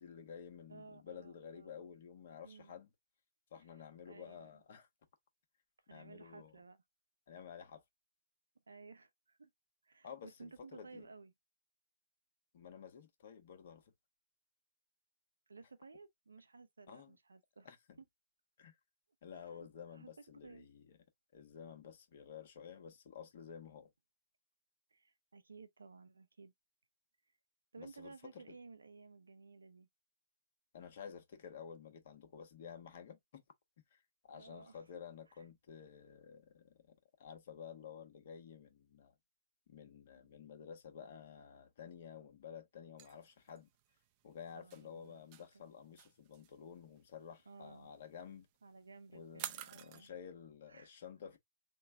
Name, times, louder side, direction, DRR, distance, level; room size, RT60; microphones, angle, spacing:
voice 1, 0.0-2.9 3.5-4.9 5.9-6.5 7.3-7.8 10.0-11.0 12.5-13.9 16.9-17.2 17.6-18.0 18.6-18.8 19.2-20.9 21.3-23.9 27.8-28.6 30.7-33.4 33.9-39.1 39.7-43.7 44.2-48.5 49.1-51.4, left 7 dB, 60° left, 1.2 m, -52 dB
voice 2, 0.7-1.9 2.4-2.8 4.1-4.6 5.9-6.8 8.7-9.5 9.8-11.3 15.5-17.7 19.3-19.7 19.9-20.1 20.4-20.7 24.9-26.5 27.7-29.9 34.3-34.8 35.3-35.4 44.5-45.3 45.5-45.7 47.5-47.9 48.6-50.1 50.7-50.9, right 4 dB, 85° right, 0.7 m, -56 dB
sound 1, 43.0-50.1, right 12 dB, 40° right, 0.5 m, -50 dB
3.7 x 2.2 x 3.6 m
hypercardioid pair, 125°, 0 cm